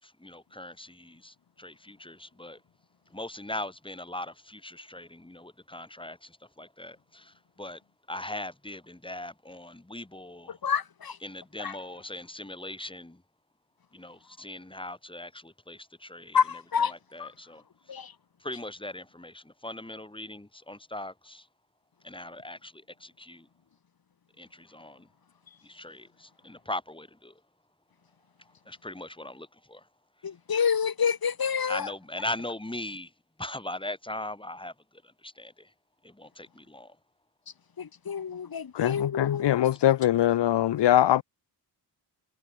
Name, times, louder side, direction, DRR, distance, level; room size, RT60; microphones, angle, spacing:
voice 1, 0.0-2.6 3.1-7.8 8.1-10.6 11.2-13.2 13.9-18.0 18.4-21.5 22.0-23.5 24.4-25.1 25.6-27.4 28.4-29.9 31.6-33.1 33.4-35.7 36.0-37.0, left 1 dB, 10° left, 4.5 m, -40 dB
voice 2, 10.5-11.2 11.6-11.7 16.3-16.9 17.2-17.3 17.9-18.1 30.2-31.9 37.8-39.5, left 7 dB, 55° left, 2.6 m, -28 dB
voice 3, 38.7-41.2, left 12 dB, 75° left, 0.7 m, -22 dB
wide cardioid pair, 100°, 42 cm